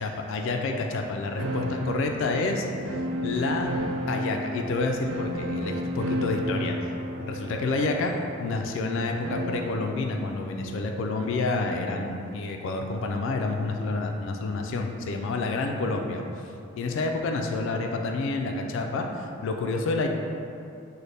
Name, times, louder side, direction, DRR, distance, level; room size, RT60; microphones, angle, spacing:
voice 1, 0.0-2.7 3.2-3.7 4.1-6.9 7.2-8.1 8.4-16.2 16.8-20.1, left 3 dB, 65° left, 3 dB, 0.3 m, -29 dB
sound 1, 1.4-9.8, equal, 70° right, 0.4 m, -32 dB
3.2 x 2.1 x 4.0 m, 2.5 s
head